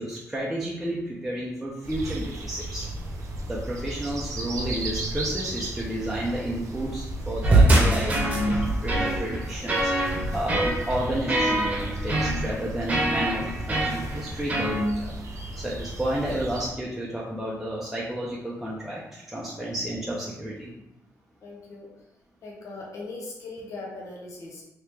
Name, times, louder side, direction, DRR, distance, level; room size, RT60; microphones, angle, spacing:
voice 1, 0.0-2.9 3.5-15.2 15.6-20.7, right 1 dB, 5° right, -5 dB, 0.5 m, -31 dB
sound 1, 1.8-16.7, right 1 dB, 70° right, 0.7 m, -34 dB
sound 2, 7.4-14.8, right 1 dB, 25° right, 0.9 m, -24 dB
voice 2, 21.4-21.9 22.4-24.6, left 2 dB, 65° left, -2 dB, 0.8 m, -39 dB
3.0 x 2.8 x 3.4 m, 0.87 s
wide cardioid pair, 135°, 6 cm